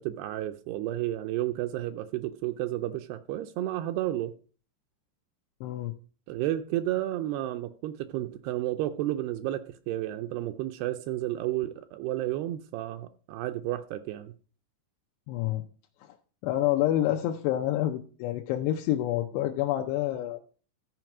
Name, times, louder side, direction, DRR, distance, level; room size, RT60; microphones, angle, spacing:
voice 1, 0.0-4.3 6.3-14.3, right 14 dB, 80° right, 7 dB, 2.5 m, -32 dB
voice 2, 5.6-5.9 15.3-15.6 16.0-16.1 16.4-20.4, left 13 dB, 85° left, 3 dB, 2.8 m, -28 dB
13.5 x 4.6 x 6.0 m, 0.40 s
omnidirectional pair, 4.8 m